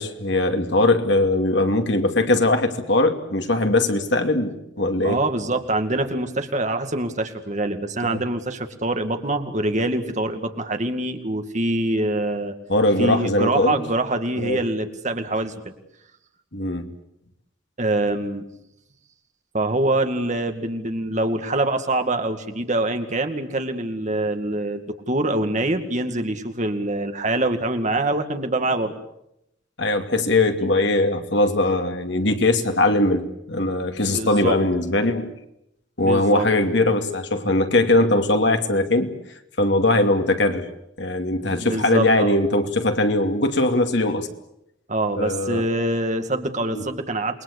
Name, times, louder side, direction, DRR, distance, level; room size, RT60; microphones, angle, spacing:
voice 1, 0.0-5.2 8.0-8.2 12.7-13.8 14.4-14.6 16.5-16.9 29.8-35.3 36.0-39.1 39.6-40.7 41.0-44.3 45.2-45.6 46.7-46.8, left 2 dB, 65° left, 6 dB, 2.6 m, -20 dB
voice 2, 5.0-12.5 13.0-15.7 17.8-18.4 19.5-28.9 34.1-34.6 36.0-36.5 41.5-42.4 44.9-47.4, right 2 dB, 40° right, 7 dB, 2.2 m, -24 dB
28.5 x 21.5 x 8.3 m, 0.81 s
head